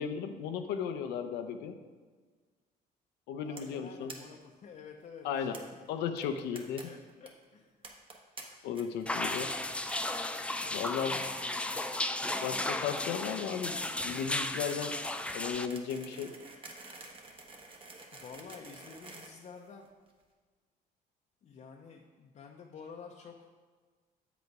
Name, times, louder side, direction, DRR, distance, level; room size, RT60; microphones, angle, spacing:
voice 1, 0.0-1.8 3.3-4.1 5.2-5.6 5.9-6.9 8.6-9.5 10.7-11.2 12.4-15.0 15.3-16.3, left 7 dB, 90° left, 7 dB, 0.6 m, -35 dB
voice 2, 3.4-5.6 6.5-7.9 8.5-8.7 10.5-11.9 18.1-19.9 21.4-23.5, left 6 dB, 45° left, 1 dB, 0.6 m, -51 dB
sound 1, 3.6-3.8 4.1-4.2 4.4-4.5 4.7-4.8 5.5-5.6 6.2-6.8 7.1-7.3 7.8-8.4 8.7-9.1 9.4-9.5 9.9-10.2 10.6-10.9 11.2-11.8 12.0-20.1, right 3 dB, 30° right, 1.1 m, -50 dB
sound 2, 9.1-15.7, left 2 dB, 5° left, 0.3 m, -34 dB
7.9 x 5.1 x 4.7 m, 1.5 s
cardioid pair, 110°, 17 cm